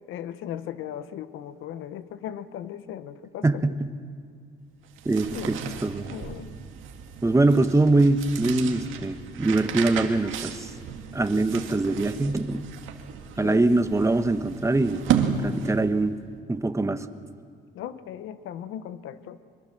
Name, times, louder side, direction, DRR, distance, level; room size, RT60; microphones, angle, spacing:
voice 1, 0.1-3.8 5.3-5.8 6.1-6.5 13.4-13.8 17.7-19.4, left 10 dB, 90° left, 13 dB, 1.0 m, -37 dB
voice 2, 3.4-3.9 5.0-6.1 7.2-10.7 11.1-12.6 13.4-16.2 16.5-17.1, right 2 dB, 15° right, 10 dB, 1.2 m, -23 dB
sound 1, 4.8-16.0, right 7 dB, 90° right, 1.9 m, -33 dB
24.0 x 22.5 x 7.4 m, 2.2 s
cardioid pair, 90°, 20 cm